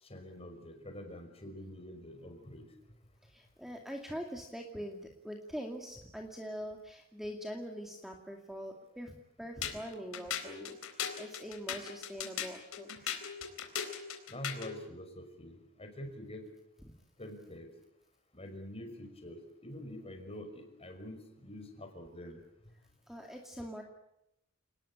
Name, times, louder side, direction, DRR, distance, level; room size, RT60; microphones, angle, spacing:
voice 1, 0.0-2.7 14.3-16.4 17.2-17.7 18.3-22.4, left 1 dB, 30° left, 5 dB, 5.6 m, -46 dB
voice 2, 3.2-13.2 23.1-23.8, equal, ahead, 1 dB, 2.3 m, -43 dB
sound 1, 9.6-14.8, left 8 dB, 80° left, 4.1 m, -39 dB
29.0 x 19.5 x 8.8 m, 0.86 s
head